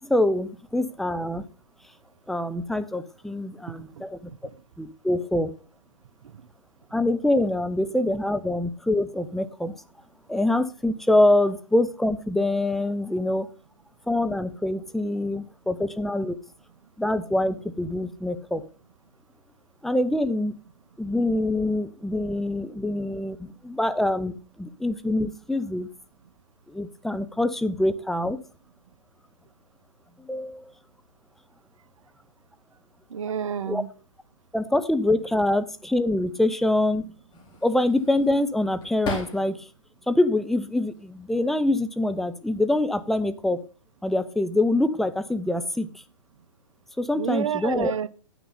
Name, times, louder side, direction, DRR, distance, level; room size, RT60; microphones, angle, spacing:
voice 1, 0.0-1.4 2.3-4.2 4.8-5.5 6.9-9.8 10.3-13.5 14.1-16.4 17.0-18.6 19.8-20.5 21.0-25.9 26.7-28.4 30.2-30.7 33.7-33.8 34.5-37.1 37.6-39.7 40.1-43.6 44.0-45.9 47.0-47.9, left 1 dB, ahead, 0.5 m, -25 dB
voice 2, 33.1-33.9 47.1-48.1, right 8 dB, 70° right, 0.8 m, -29 dB
sound 1, 37.3-39.8 40.2-41.1 42.0-42.3 42.7-43.5, left 3 dB, 25° left, 2.6 m, -38 dB
9.5 x 6.1 x 5.4 m
hypercardioid pair, 125°, 17 cm